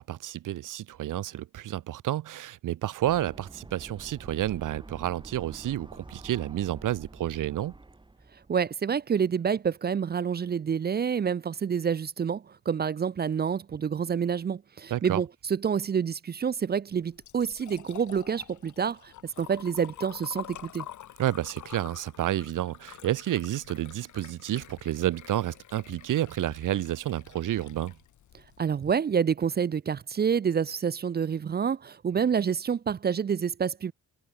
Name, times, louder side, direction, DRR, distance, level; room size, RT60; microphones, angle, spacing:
voice 1, 0.0-7.8 14.9-15.2 21.2-27.9, right 13 dB, 80° right, 1.2 m, -30 dB
sound 1, 3.0-8.6, right 2 dB, 15° right, 5.4 m, -48 dB
voice 2, 8.5-20.9 28.6-33.9, right 7 dB, 30° right, 0.6 m, -28 dB
Liquid, 16.9-28.9, left 11 dB, 70° left, 2.1 m, -47 dB
cardioid pair, 135°, 31 cm